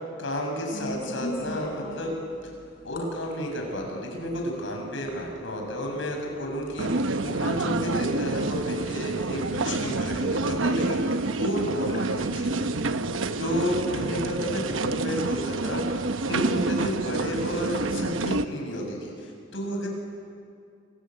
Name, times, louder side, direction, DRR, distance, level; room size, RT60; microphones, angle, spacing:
voice 1, 0.2-2.1 2.4-2.5 2.8-12.7 13.4-19.9, equal, 75° left, 1 dB, 7.3 m, -31 dB
sound 1, 0.7-18.3, equal, 50° left, 5.9 m, -44 dB
sound 2, 6.8-18.5, right 3 dB, 90° right, 1.0 m, -28 dB
28.5 x 21.5 x 9.2 m, 2.3 s
head